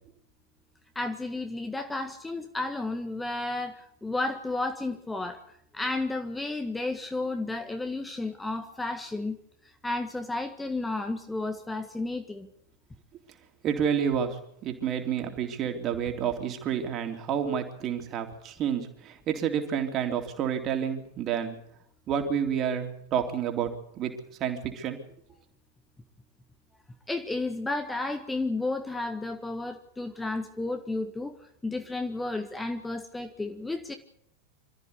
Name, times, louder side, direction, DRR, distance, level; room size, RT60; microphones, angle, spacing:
voice 1, 0.9-9.4 9.8-12.5 27.1-31.4 31.6-33.9, left 2 dB, 10° left, 6 dB, 1.7 m, -32 dB
voice 2, 13.6-14.4 14.6-21.6 22.1-24.1 24.4-25.0, right 8 dB, 35° right, 5 dB, 3.6 m, -29 dB
26.5 x 14.0 x 8.4 m, 0.73 s
figure-of-eight pair, 90°, 0 cm